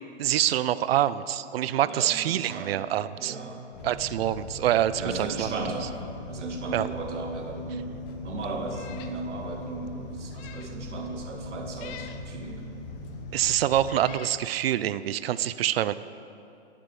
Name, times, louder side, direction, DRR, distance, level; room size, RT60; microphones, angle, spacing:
voice 1, 0.2-3.4 3.8-5.5 6.7-6.9 13.3-15.9, right 12 dB, 60° right, 16 dB, 0.6 m, -26 dB
voice 2, 1.8-2.8 3.2-4.0 5.0-6.0 6.3-12.9, right 3 dB, 80° right, 2 dB, 2.4 m, -36 dB
sound 1, 3.7-14.0, left 2 dB, 50° left, 1.8 m, -40 dB
Meow, 8.7-9.2 9.6-9.7 10.2-10.8 11.7-12.3 13.1-13.2 13.8-14.4, left 10 dB, 25° left, 0.6 m, -46 dB
12.5 x 8.8 x 7.3 m, 2.6 s
hypercardioid pair, 140°, 35 cm